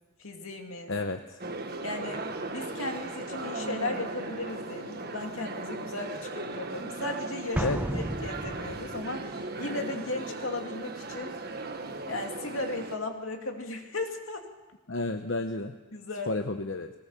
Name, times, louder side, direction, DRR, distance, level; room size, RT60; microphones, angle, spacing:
voice 1, 0.2-0.9 1.8-7.7 7.9-11.3 12.1-14.5 15.9-16.3, left 2 dB, 80° left, 3 dB, 2.6 m, -36 dB
voice 2, 0.9-1.4 7.6-7.8 14.9-15.7 16.3-16.9, left 2 dB, 60° left, 6 dB, 1.0 m, -31 dB
sound 1, 1.4-13.0, right 2 dB, 50° right, 1.6 m, -37 dB
Explosion, 7.5-9.1, right 1 dB, 10° right, 0.7 m, -33 dB
21.0 x 19.0 x 7.1 m, 1.2 s
head